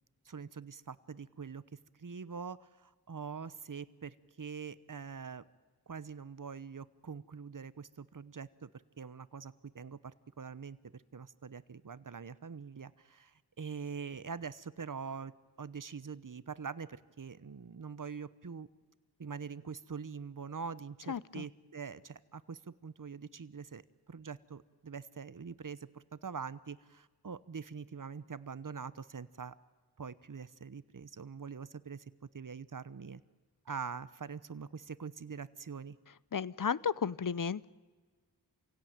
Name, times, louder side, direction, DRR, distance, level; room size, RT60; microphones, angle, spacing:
voice 1, 0.3-5.4 5.9-8.7 9.0-18.7 19.2-23.8 24.1-29.6 30.0-33.2 33.6-36.0, right 6 dB, 50° right, 16 dB, 1.0 m, -44 dB
voice 2, 21.1-21.5 36.3-37.6, left 6 dB, 50° left, 20 dB, 0.7 m, -33 dB
27.5 x 17.0 x 9.0 m, 1.4 s
wide cardioid pair, 50°, 41 cm